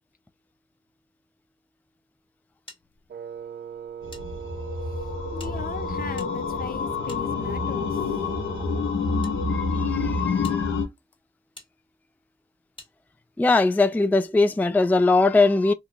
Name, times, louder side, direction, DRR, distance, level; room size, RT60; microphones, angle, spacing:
sound 1, 2.7-4.2 4.5-4.6 5.3-7.8 8.6-9.3 9.9-10.0 10.4-10.6 11.5-11.7 12.8-12.9, left 1 dB, 25° left, 1.6 m, -49 dB
Wind instrument woodwind instrument, 3.1-8.9, right 8 dB, 55° right, 0.5 m, -40 dB
sound 2, 4.0-10.9, left 4 dB, 85° left, 0.9 m, -27 dB
voice 1, 5.3-8.2, left 5 dB, 45° left, 0.6 m, -38 dB
voice 2, 9.5-10.8 13.4-15.7, left 3 dB, 10° left, 0.3 m, -21 dB
2.9 x 2.2 x 3.7 m
cardioid pair, 55°, 20 cm